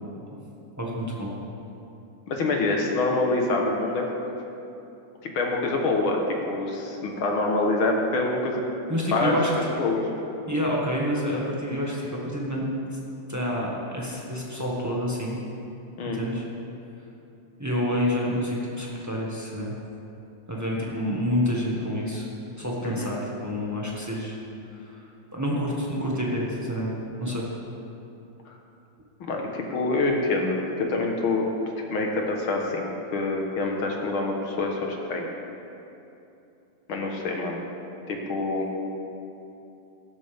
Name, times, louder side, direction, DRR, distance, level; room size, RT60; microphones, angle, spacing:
voice 1, 0.8-1.3 8.9-9.7 10.5-12.6 13.3-15.4 16.0-16.4 17.6-19.7 20.5-22.3 22.6-24.4 24.7-25.0 25.3-26.9 27.2-27.4, equal, 10° right, -4 dB, 0.7 m, -28 dB
voice 2, 2.3-4.0 5.3-8.6 9.1-9.3 9.8-10.0 16.0-16.2 22.8-23.1 28.5-28.6 29.3-31.4 31.9-35.3 36.9-37.6 38.1-38.7, left 2 dB, 55° left, 1 dB, 1.7 m, -26 dB
16.0 x 12.5 x 3.6 m, 2.8 s
omnidirectional pair, 3.4 m